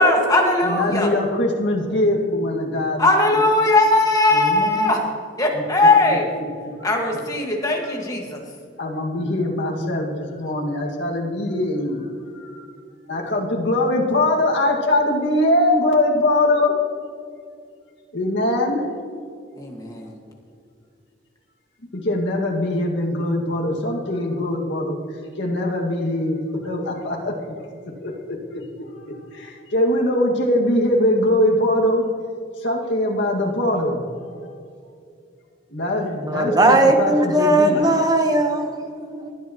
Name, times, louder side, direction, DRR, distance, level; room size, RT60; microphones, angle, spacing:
voice 1, 0.0-1.1 3.0-5.1 5.4-6.3 6.8-8.4 19.6-20.1, left 2 dB, 20° left, 0 dB, 1.8 m, -19 dB
voice 2, 0.6-3.1 4.3-5.0 5.5-6.2 6.8-6.9 7.8-7.9 8.8-12.1 12.3-12.7 13.1-16.7 18.1-18.8 21.9-25.0 25.4-27.3 28.0-28.6 29.1-32.0 32.6-34.3 35.7-37.9, left 1 dB, 70° left, -2 dB, 2.1 m, -22 dB
voice 3, 36.2-39.3, right 1 dB, 20° right, 4 dB, 1.1 m, -18 dB
19.5 x 10.5 x 3.1 m, 2.3 s
head